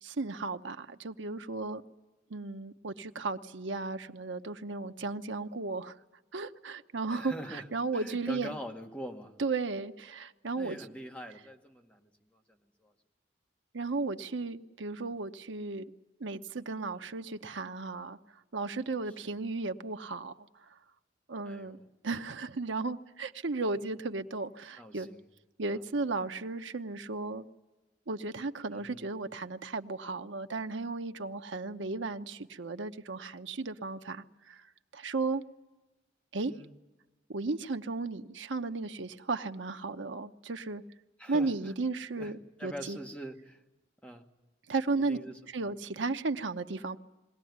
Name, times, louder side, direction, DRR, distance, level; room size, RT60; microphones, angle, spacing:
voice 1, 0.0-1.8 2.3-5.9 6.3-8.5 9.4-10.8 13.7-15.8 16.2-18.2 18.5-20.3 20.6-20.7 21.3-25.1 25.6-27.5 28.1-34.7 34.9-35.4 36.3-36.5 37.3-40.8 41.3-43.0 44.7-45.2 45.5-47.0, right 3 dB, 80° right, 8 dB, 0.9 m, -35 dB
voice 2, 7.1-7.6 7.9-9.4 10.5-12.4 12.8-12.9 19.2-19.3 21.4-21.8 24.8-25.2 28.7-29.0 36.5-36.7 41.2-41.5 42.2-42.3 42.6-43.6 44.0-44.3 45.0-45.4, equal, 5° left, 3 dB, 1.6 m, -44 dB
22.0 x 17.5 x 9.4 m, 1.1 s
head